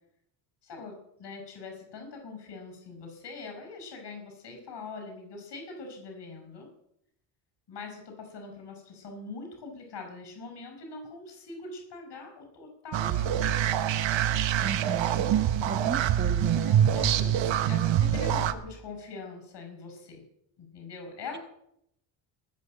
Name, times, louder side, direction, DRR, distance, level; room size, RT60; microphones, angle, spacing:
voice 1, 0.6-6.7 7.7-13.6 15.3-15.7 16.7-20.2 20.6-21.4, left 3 dB, 55° left, 3 dB, 6.4 m, -43 dB
sound 1, 12.9-18.5, right 10 dB, 65° right, 1.4 m, -25 dB
voice 2, 14.6-15.3 15.7-16.8, right 5 dB, 20° right, 6 dB, 1.1 m, -35 dB
19.0 x 6.7 x 7.7 m, 0.75 s
supercardioid pair, 85°, 50 cm